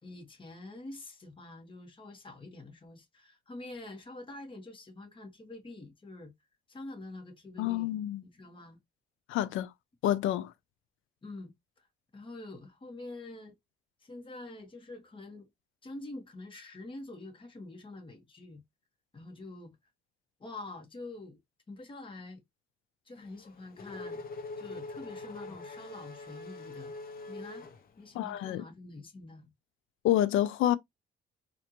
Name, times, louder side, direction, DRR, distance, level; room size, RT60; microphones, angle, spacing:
voice 1, 0.0-6.3 6.7-7.9 8.2-8.8 11.2-11.5 11.8-11.9 12.1-13.6 14.0-15.5 15.8-18.6 19.1-19.8 20.4-21.4 21.7-22.4 23.0-27.0 27.3-27.7 28.0-29.5, left 2 dB, 25° left, 1.4 m, -46 dB
voice 2, 7.6-8.2 9.3-9.7 10.0-10.5 28.1-28.6 30.0-30.8, left 12 dB, 85° left, 0.5 m, -28 dB
Race car auto racing / Accelerating revving vroom, 23.2-28.4, left 3 dB, 45° left, 0.9 m, -44 dB
4.2 x 2.6 x 2.9 m
cardioid pair, 90°, 20 cm